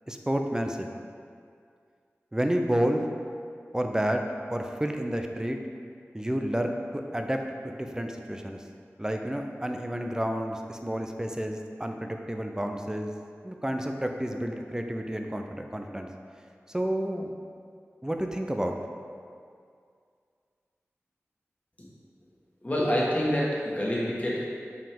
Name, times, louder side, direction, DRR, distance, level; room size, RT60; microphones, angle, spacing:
voice 1, 0.1-0.9 2.3-3.1 3.7-4.2 4.5-5.6 6.1-8.6 9.0-13.1 13.4-16.1 16.7-17.3 18.0-18.8, equal, 15° right, 4 dB, 0.5 m, -30 dB
voice 2, 22.6-24.4, equal, 30° left, -6 dB, 1.5 m, -27 dB
5.6 x 5.1 x 3.6 m, 2.2 s
wide cardioid pair, 60°, 5 cm